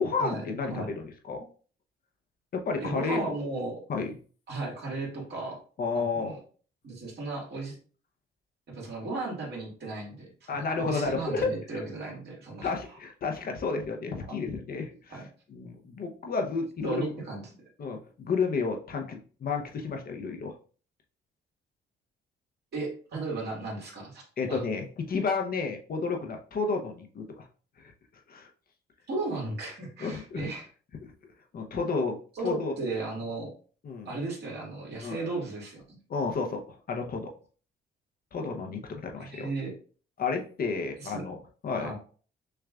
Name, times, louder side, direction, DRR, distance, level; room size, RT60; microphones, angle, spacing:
voice 1, 0.0-1.5 2.5-3.2 3.9-4.1 5.8-6.4 10.5-11.8 12.6-17.1 17.8-20.6 24.4-27.5 27.8-27.9 28.3-28.5 30.0-30.4 31.5-32.2 32.4-32.8 33.8-34.1 35.0-35.2 36.1-36.6 36.9-37.3 38.3-39.5 40.2-41.9, left 4 dB, 50° left, 2 dB, 0.7 m, -31 dB
voice 2, 2.8-3.8 4.5-5.6 5.9-6.4 6.8-7.7 8.7-12.7 14.3-14.4 15.1-15.3 16.8-17.5 22.7-24.6 29.1-30.7 32.4-33.5 34.1-36.0 39.2-39.7 41.0-41.2 41.8-41.9, right 3 dB, 55° right, -2 dB, 2.0 m, -35 dB
6.5 x 2.4 x 2.4 m, 0.41 s
cardioid pair, 90°, 20 cm